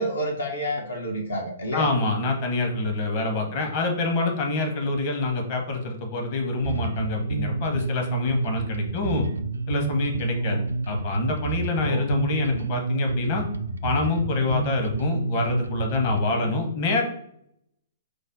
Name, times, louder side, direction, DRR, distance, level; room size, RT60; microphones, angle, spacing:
voice 1, 0.0-1.9 3.3-3.5 10.4-10.6 11.9-12.1 16.3-16.5, equal, 80° left, 2 dB, 0.8 m, -30 dB
voice 2, 1.7-9.3 9.7-13.4 13.8-17.0, left 3 dB, 40° left, 3 dB, 0.9 m, -26 dB
Bass guitar, 6.6-16.2, right 3 dB, 85° right, 0.3 m, -29 dB
5.1 x 2.0 x 3.9 m, 0.72 s
figure-of-eight pair, 120°, 0 cm